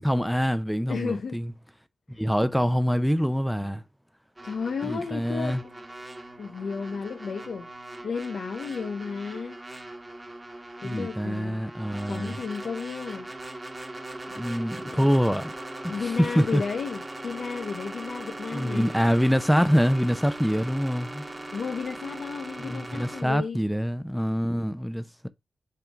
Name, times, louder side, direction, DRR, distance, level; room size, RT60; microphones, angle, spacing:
voice 1, 0.0-1.5 2.2-3.8 4.8-5.6 10.8-12.4 14.4-15.5 15.8-16.6 18.5-21.2 22.6-25.3, equal, ahead, 0.7 m, -25 dB
voice 2, 0.9-1.4 2.1-2.2 4.4-5.7 6.4-7.7 8.0-9.6 10.8-11.6 12.1-13.3 14.3-14.4 14.7-15.1 15.9-18.9 21.5-23.6, left 5 dB, 75° left, 0.8 m, -33 dB
sound 1, 4.4-23.2, right 1 dB, 25° right, 1.3 m, -40 dB
5.8 x 3.7 x 4.6 m
cardioid pair, 70°, 0 cm